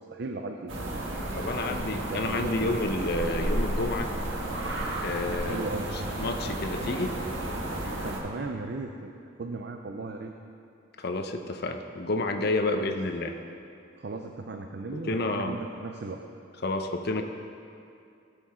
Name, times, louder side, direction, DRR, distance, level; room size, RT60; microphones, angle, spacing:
voice 1, 0.1-0.7 1.9-2.7 5.4-5.9 7.9-9.1 9.4-10.3 12.8-12.9 14.0-16.2, right 3 dB, 55° right, 4 dB, 0.5 m, -37 dB
sound 1, 0.7-8.2, right 1 dB, 75° right, 1.5 m, -32 dB
voice 2, 1.3-4.1 5.0-5.7 6.2-7.2 11.0-13.3 14.9-15.6 16.6-17.2, left 2 dB, 55° left, 5 dB, 0.7 m, -30 dB
16.5 x 6.9 x 4.3 m, 2.5 s
head